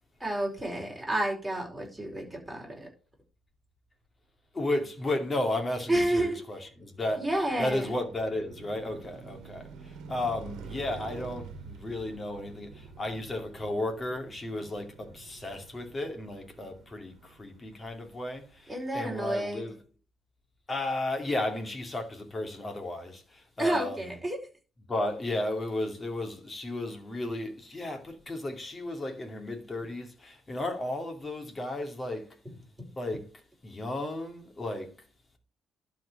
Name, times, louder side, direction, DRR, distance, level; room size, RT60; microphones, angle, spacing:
voice 1, 0.2-2.9 5.9-6.4 7.2-7.9 18.7-19.7 23.6-24.4 32.8-32.9, right 1 dB, 10° right, 4.7 m, -30 dB
voice 2, 4.5-7.2 7.6-19.7 20.7-24.0 24.9-32.4 33.0-33.3 33.6-34.9, left 1 dB, 25° left, 2.6 m, -34 dB
Car passing by, 6.7-19.0, right 5 dB, 80° right, 1.4 m, -48 dB
11.5 x 4.7 x 6.4 m
cardioid pair, 110°, 0 cm